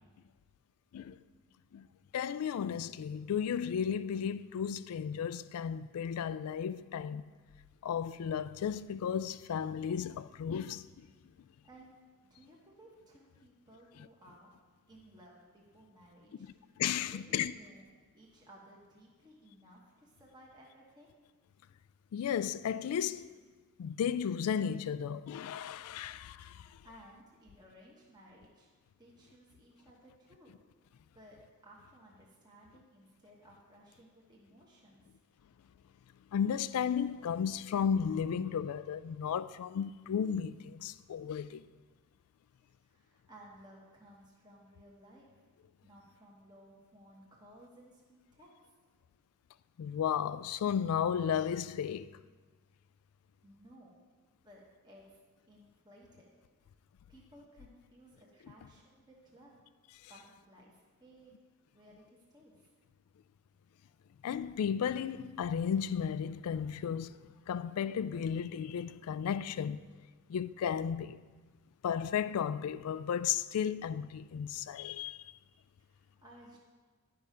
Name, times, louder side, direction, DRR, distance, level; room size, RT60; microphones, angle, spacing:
voice 1, 2.1-7.2 7.8-10.8 16.8-17.5 22.1-23.3 23.8-26.7 36.3-41.7 49.8-52.2 64.2-69.8 70.3-71.2 71.8-75.3, left 8 dB, 75° left, 0.3 m, -34 dB
voice 2, 11.3-12.0 12.2-14.5 14.9-17.9 18.1-21.1 26.8-28.7 29.0-30.6 31.1-35.5 42.8-45.4 45.8-48.7 53.4-54.0 54.4-56.3 57.1-59.6 60.1-61.4 61.7-62.7 75.9-76.6, right 1 dB, 20° right, 1.2 m, -58 dB
10.5 x 5.5 x 5.0 m
head